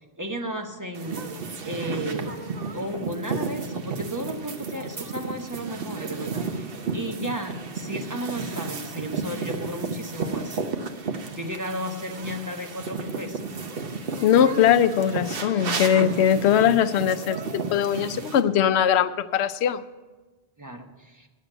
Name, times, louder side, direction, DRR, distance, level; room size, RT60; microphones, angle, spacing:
voice 1, 0.2-1.3 1.6-2.4 2.7-6.7 6.9-10.6 11.3-13.4 16.3-16.4 20.6-21.3, equal, 20° right, 3 dB, 0.9 m, -34 dB
sound 1, 0.9-18.4, right 4 dB, 60° right, 1.1 m, -33 dB
voice 2, 14.2-19.8, left 9 dB, 80° left, 12 dB, 0.8 m, -21 dB
9.4 x 7.4 x 9.0 m, 1.3 s
omnidirectional pair, 1.1 m